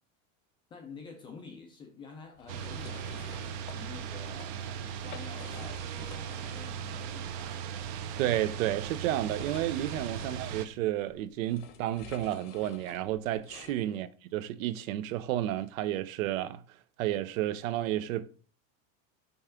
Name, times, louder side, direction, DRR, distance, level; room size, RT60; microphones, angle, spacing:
voice 1, 0.7-3.3 3.7-7.9 10.1-10.4 13.9-14.1, left 4 dB, 15° left, 0.3 m, -49 dB
sound 1, 2.4-3.8 4.2-4.5 4.9-6.8 7.1-7.2 8.2-13.8, left 8 dB, 60° left, 1.0 m, -50 dB
sound 2, 2.5-10.7, right 8 dB, 40° right, 0.5 m, -38 dB
voice 2, 8.2-16.6 17.0-18.3, right 13 dB, 80° right, 0.7 m, -31 dB
5.5 x 3.4 x 5.7 m
supercardioid pair, 160°, 40 cm